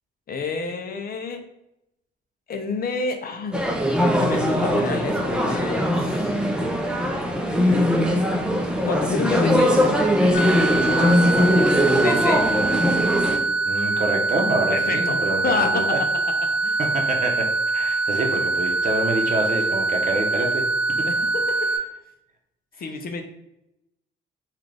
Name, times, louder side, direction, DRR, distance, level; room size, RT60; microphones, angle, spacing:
voice 1, 0.3-1.4 2.5-3.6 4.0-6.4 7.6-7.9 8.8-9.9 11.9-12.5 14.7-16.0 16.6-16.8 21.0-21.7 22.8-23.2, left 4 dB, 50° left, 5 dB, 0.6 m, -29 dB
sound 1, 3.5-13.4, equal, 5° right, 0.6 m, -21 dB
sound 2, 10.3-21.8, right 3 dB, 75° left, 0.9 m, -24 dB
voice 2, 10.8-11.6 13.7-16.0 16.8-20.7 21.0-21.1, right 2 dB, 40° right, 2 dB, 0.8 m, -27 dB
3.7 x 2.4 x 3.3 m, 0.84 s
cardioid pair, 90°, 20 cm